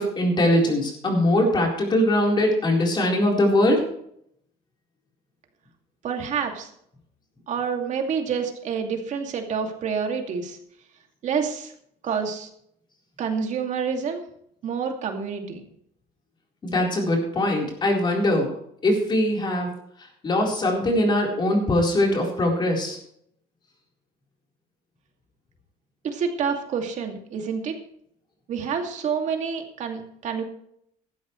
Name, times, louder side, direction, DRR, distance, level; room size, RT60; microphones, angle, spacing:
voice 1, 0.0-3.8 16.6-18.5 18.8-19.7 20.2-23.0, left 1 dB, 25° left, 0 dB, 4.2 m, -21 dB
voice 2, 6.0-6.7 7.5-10.6 11.2-11.7 12.0-12.5 13.2-14.3 14.6-15.6 26.0-27.8 28.5-30.4, right 6 dB, 45° right, 4 dB, 2.5 m, -28 dB
15.0 x 13.0 x 3.2 m, 0.70 s
cardioid pair, 150°, 17 cm